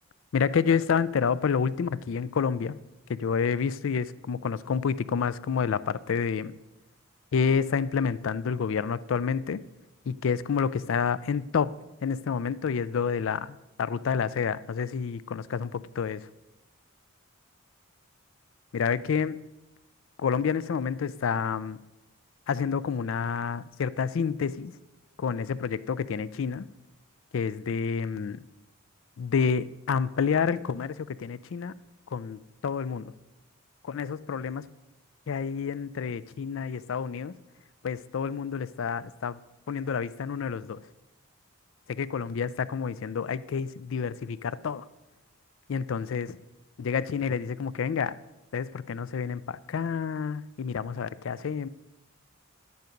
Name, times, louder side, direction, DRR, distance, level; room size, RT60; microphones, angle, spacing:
voice 1, 0.3-2.8 3.1-6.5 7.3-9.6 10.1-11.8 12.0-16.3 18.7-19.4 20.2-21.8 22.5-24.7 25.2-26.7 27.3-28.4 29.2-31.7 32.1-33.1 33.8-34.7 35.3-37.3 37.8-39.4 39.7-40.8 41.9-44.9 45.7-46.4 46.8-48.1 48.5-51.7, left 6 dB, 65° left, 0.4 m, -29 dB
10.5 x 9.4 x 5.1 m
head